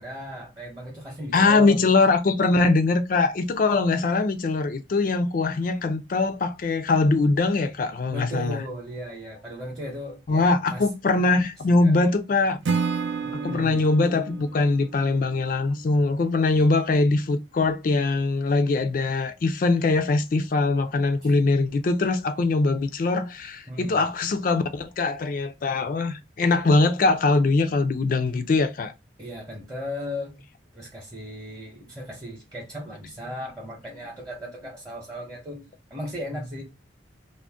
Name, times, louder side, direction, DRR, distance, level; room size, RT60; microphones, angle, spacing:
voice 1, 0.0-1.8 8.1-10.9 11.7-12.0 13.2-13.8 21.2-21.3 23.7-24.0 29.2-30.4 30.7-35.6 35.9-36.6, equal, 20° right, 0.8 m, -36 dB
voice 2, 1.3-8.6 10.3-12.6 13.4-28.9, left 3 dB, 45° left, 0.3 m, -22 dB
Acoustic guitar / Strum, 12.6-15.8, right 5 dB, 75° right, 0.4 m, -30 dB
2.5 x 2.1 x 3.3 m
head